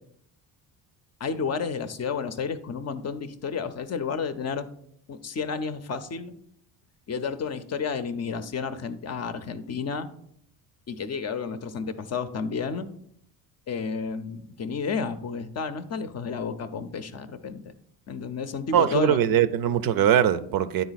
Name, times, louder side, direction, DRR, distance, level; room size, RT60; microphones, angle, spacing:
voice 1, 1.2-4.7 5.1-6.3 7.1-10.1 10.9-12.9 13.7-17.6 18.1-19.2, left 5 dB, 35° left, 0.6 m, -31 dB
voice 2, 18.7-20.8, right 10 dB, 55° right, 0.6 m, -21 dB
9.4 x 4.0 x 4.0 m
supercardioid pair, 85°, 43 cm